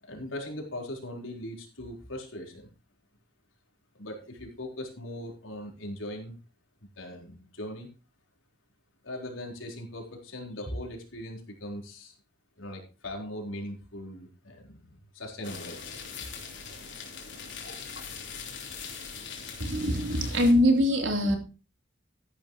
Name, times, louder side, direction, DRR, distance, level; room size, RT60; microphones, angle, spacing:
voice 1, 0.0-2.7 3.9-6.4 7.0-7.9 9.0-12.1 12.6-16.3, left 1 dB, 80° left, 1 dB, 4.3 m, -40 dB
sound 1, 15.4-20.5, left 6 dB, 60° left, 3.9 m, -41 dB
voice 2, 19.6-21.4, equal, 70° right, 3 dB, 3.6 m, -23 dB
14.0 x 11.0 x 3.1 m, 0.32 s
head